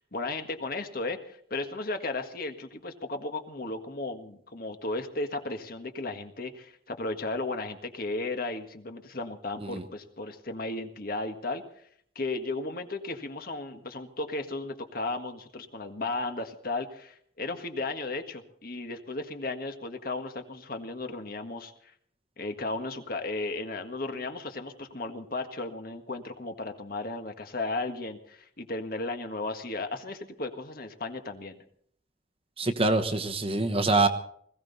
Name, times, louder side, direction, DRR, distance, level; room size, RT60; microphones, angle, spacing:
voice 1, 0.1-11.6 12.2-21.9 22.4-31.6, left 2 dB, 55° left, 6 dB, 1.7 m, -35 dB
voice 2, 32.6-34.1, right 2 dB, 30° right, 8 dB, 1.1 m, -25 dB
20.0 x 16.0 x 4.2 m, 0.64 s
head